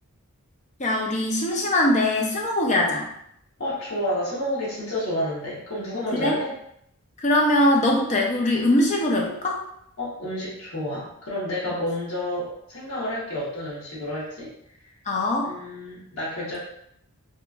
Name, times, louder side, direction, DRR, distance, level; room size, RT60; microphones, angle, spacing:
voice 1, 0.8-3.1 5.9-6.3 7.2-9.6 15.1-15.5, left 1 dB, 30° left, 0 dB, 0.5 m, -22 dB
voice 2, 3.6-6.5 10.0-14.5 15.4-16.6, left 1 dB, 60° left, -8 dB, 1.0 m, -30 dB
2.8 x 2.4 x 2.3 m, 0.74 s
head